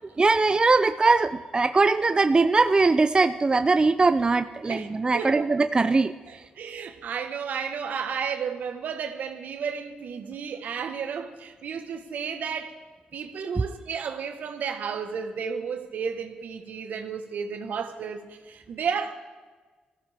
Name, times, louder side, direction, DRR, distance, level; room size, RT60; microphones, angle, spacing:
voice 1, 0.2-6.1, right 3 dB, 30° right, 0.5 m, -21 dB
voice 2, 5.1-5.6 6.3-12.8 13.1-19.1, right 6 dB, 70° right, 1.3 m, -32 dB
20.5 x 15.0 x 3.5 m
supercardioid pair, 60°, 3 cm